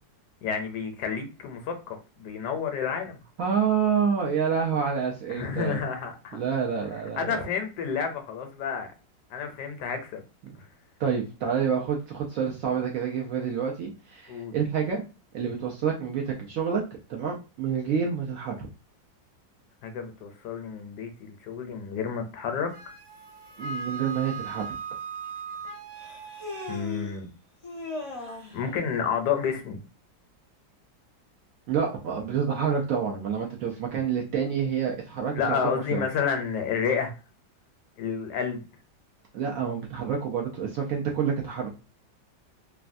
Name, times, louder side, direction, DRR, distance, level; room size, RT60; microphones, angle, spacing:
voice 1, 0.4-3.2 5.3-6.4 7.2-8.9 9.3-10.2 14.3-14.6 19.8-22.7 26.7-27.3 28.5-29.8 35.3-37.1 38.0-38.6, left 6 dB, 75° left, 6 dB, 1.1 m, -30 dB
voice 2, 3.4-5.8 6.3-7.4 10.4-10.5 11.0-15.0 15.3-16.8 17.1-18.7 23.6-24.6 31.7-35.6 35.9-36.0 39.3-41.7, right 7 dB, 70° right, 0 dB, 0.8 m, -28 dB
Wind instrument woodwind instrument, 22.7-26.8, right 5 dB, 90° right, 1.5 m, -38 dB
Human voice, 24.6-24.7 26.0-27.2 27.6-28.6, left 3 dB, 40° left, 0.5 m, -38 dB
3.2 x 2.2 x 2.5 m, 0.31 s
omnidirectional pair, 1.9 m